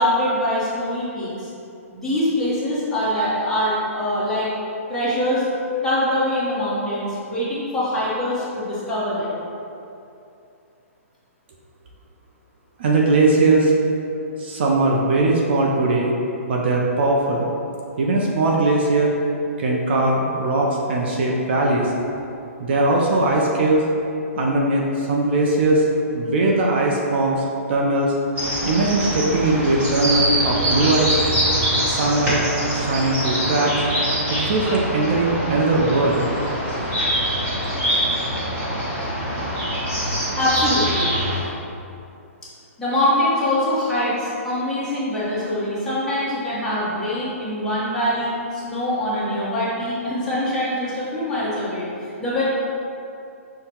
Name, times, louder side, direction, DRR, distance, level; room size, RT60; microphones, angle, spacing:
voice 1, 0.0-1.5 1.9-4.5 4.9-5.4 5.8-9.3 40.3-41.1 42.8-51.9 52.2-52.4, left 1 dB, 5° left, -11 dB, 1.0 m, -23 dB
voice 2, 12.8-13.7 14.4-16.1 16.5-17.5 18.0-19.1 19.6-21.9 22.6-23.8 24.4-25.8 26.1-27.4 27.7-28.1 28.6-31.1 31.9-32.4 32.7-33.7 34.3-36.3, right 2 dB, 50° right, -2 dB, 0.5 m, -20 dB
sound 1, 28.4-41.4, equal, 15° right, 1.3 m, -24 dB
5.7 x 2.2 x 4.3 m, 2.7 s
hypercardioid pair, 160°, 8 cm